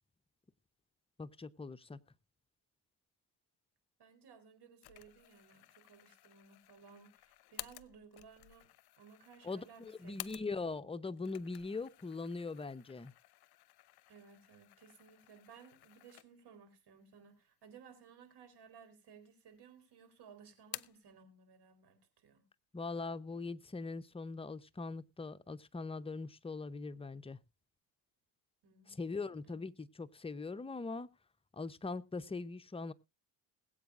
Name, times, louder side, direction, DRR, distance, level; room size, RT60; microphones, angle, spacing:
voice 1, 1.2-2.0 9.4-13.1 22.7-27.4 29.0-31.1 31.5-32.9, left 3 dB, 10° left, 0.8 m, -41 dB
voice 2, 4.0-8.7 9.0-10.4 14.1-22.4 28.6-29.6, right 6 dB, 55° right, 4.2 m, -59 dB
sound 1, 4.8-10.8 11.1-16.6 17.0-17.1 18.0-18.6 18.9-19.7 20.0-21.1, left 16 dB, 50° left, 0.8 m, -53 dB
21.0 x 8.2 x 2.5 m
hypercardioid pair, 65°, 48 cm